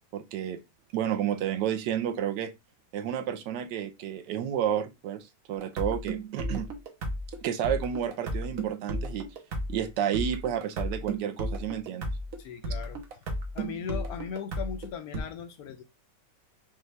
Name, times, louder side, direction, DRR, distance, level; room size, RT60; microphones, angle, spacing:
voice 1, 0.1-0.6 0.9-2.5 2.9-6.7 7.4-9.3 9.7-12.1, right 10 dB, 80° right, 1.3 m, -31 dB
sound 1, 5.6-15.2, right 1 dB, 60° right, 1.2 m, -34 dB
voice 2, 12.4-13.0 13.5-15.8, left 8 dB, 70° left, 1.0 m, -38 dB
5.3 x 2.3 x 3.2 m
omnidirectional pair, 1.9 m